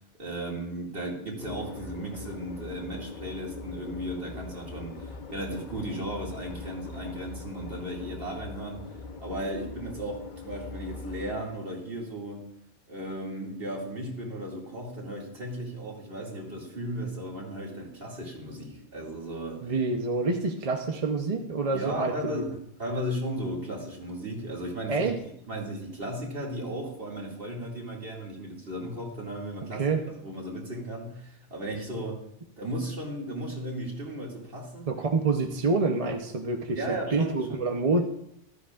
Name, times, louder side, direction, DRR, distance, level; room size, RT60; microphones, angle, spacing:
voice 1, 0.2-8.8 9.2-12.5 12.9-19.7 21.7-25.1 25.5-29.8 30.2-32.2 32.6-34.9 36.8-37.6, right 1 dB, 50° right, -2 dB, 2.5 m, -35 dB
sound 1, 1.4-11.3, left 3 dB, 45° left, 0.9 m, -41 dB
voice 2, 19.6-22.4 24.9-25.2 29.8-30.0 34.9-36.8 37.1-38.0, right 3 dB, 35° right, 4 dB, 0.7 m, -27 dB
14.5 x 13.0 x 2.4 m, 0.73 s
omnidirectional pair, 1.2 m